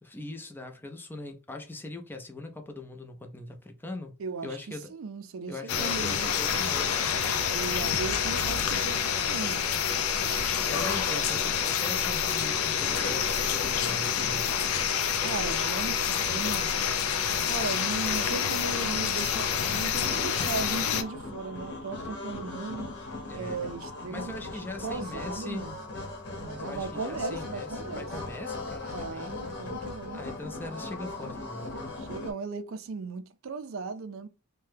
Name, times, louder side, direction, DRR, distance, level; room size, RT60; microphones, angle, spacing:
voice 1, 0.0-4.1 4.4-4.9 5.5-7.2 10.6-14.5 23.3-23.7 24.1-25.7 26.5-29.8 30.1-31.9, left 2 dB, 10° left, 0.5 m, -41 dB
voice 2, 4.2-6.3 7.5-9.7 15.2-16.7 17.4-22.9 23.3-24.5 24.8-25.8 26.4-28.1 28.9-30.2 32.0-34.3, right 4 dB, 65° right, 0.4 m, -37 dB
sound 1, 5.7-21.0, left 7 dB, 80° left, 0.4 m, -28 dB
sound 2, 20.0-32.3, left 2 dB, 55° left, 1.0 m, -39 dB
2.8 x 2.2 x 3.3 m
head